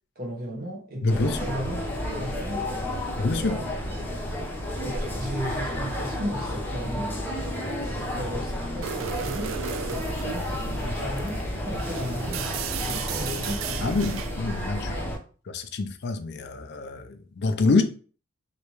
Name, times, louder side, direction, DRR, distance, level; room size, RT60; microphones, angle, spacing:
voice 1, 0.1-1.8 2.1-3.7 4.8-7.2 7.8-9.5 9.9-12.5 12.8-14.2, equal, 50° right, 1.3 m, -36 dB
voice 2, 1.0-1.4 3.2-3.6 13.8-15.1 15.5-17.8, left 3 dB, 55° left, 0.4 m, -26 dB
sound 1, 1.1-15.2, left 1 dB, 10° left, 0.8 m, -31 dB
sound 2, 8.8-14.4, right 8 dB, 80° right, 0.3 m, -35 dB
3.2 x 2.8 x 3.0 m
head